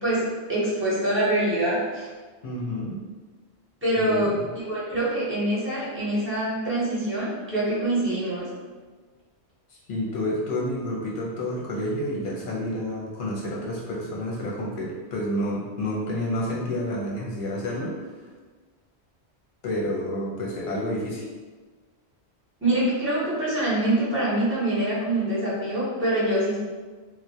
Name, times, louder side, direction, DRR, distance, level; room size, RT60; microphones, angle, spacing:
voice 1, 0.0-2.1 3.8-8.5 22.6-26.6, right 1 dB, 15° right, -9 dB, 0.7 m, -25 dB
voice 2, 2.4-3.0 4.0-4.5 9.7-18.2 19.6-21.3, left 1 dB, 55° left, -5 dB, 0.8 m, -29 dB
2.3 x 2.1 x 2.7 m, 1.4 s
omnidirectional pair, 1.1 m